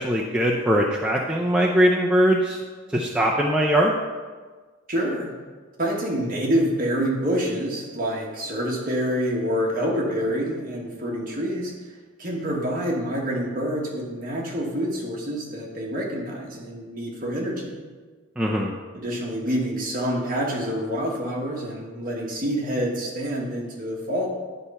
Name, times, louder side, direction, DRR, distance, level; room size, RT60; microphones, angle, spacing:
voice 1, 0.0-2.6 2.9-3.9 18.4-18.7, equal, 5° right, -3 dB, 0.5 m, -21 dB
voice 2, 4.9-5.3 5.8-17.8 18.9-24.3, equal, 40° right, -2 dB, 1.5 m, -27 dB
9.9 x 4.3 x 5.5 m, 1.4 s
head